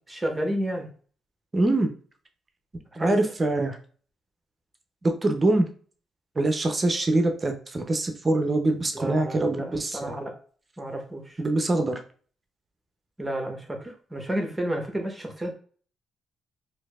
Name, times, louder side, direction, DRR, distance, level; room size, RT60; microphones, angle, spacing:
voice 1, 0.1-0.9 2.9-3.2 8.9-10.3 10.8-11.4 13.2-15.5, right 1 dB, 10° right, 3 dB, 1.0 m, -31 dB
voice 2, 1.5-1.9 3.0-3.8 5.0-5.7 6.4-10.2 11.4-12.0, right 2 dB, 30° right, 5 dB, 0.6 m, -24 dB
4.4 x 2.6 x 2.3 m, 0.44 s
cardioid pair, 90°, 0 cm